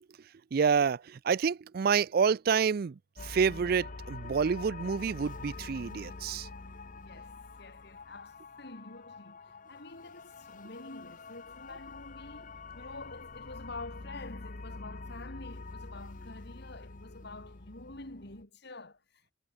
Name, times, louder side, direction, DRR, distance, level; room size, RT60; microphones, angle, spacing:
voice 1, 0.2-6.5, right 6 dB, 55° right, 0.4 m, -28 dB
sound 1, 3.2-18.4, left 3 dB, 45° left, 1.0 m, -46 dB
voice 2, 7.0-19.3, left 2 dB, 60° left, 3.3 m, -47 dB
head